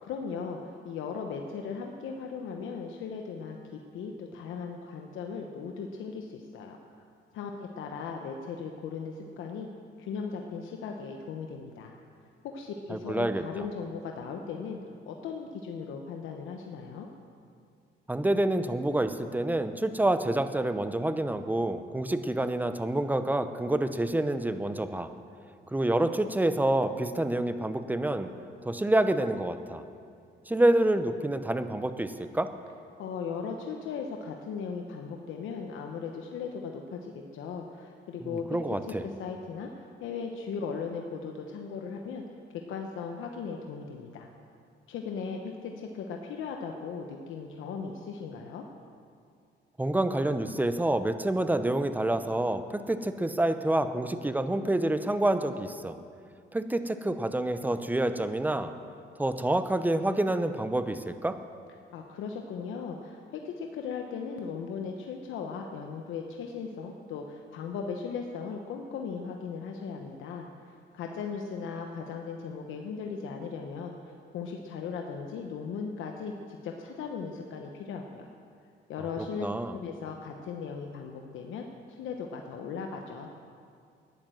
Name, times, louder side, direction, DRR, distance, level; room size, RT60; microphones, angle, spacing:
voice 1, 0.0-6.8 7.3-9.7 10.0-11.9 12.4-14.8 15.1-17.1 33.0-42.2 42.7-44.3 44.9-48.6 61.9-78.3 78.9-83.3, left 5 dB, 85° left, 3 dB, 1.0 m, -38 dB
voice 2, 12.9-13.4 18.1-25.1 25.7-28.3 28.6-29.8 30.5-32.5 38.2-39.0 49.8-56.0 56.5-58.7 59.2-61.4 79.4-79.7, right 1 dB, 10° right, 10 dB, 0.8 m, -27 dB
12.0 x 10.0 x 7.7 m, 2.3 s
cardioid pair, 90°, 20 cm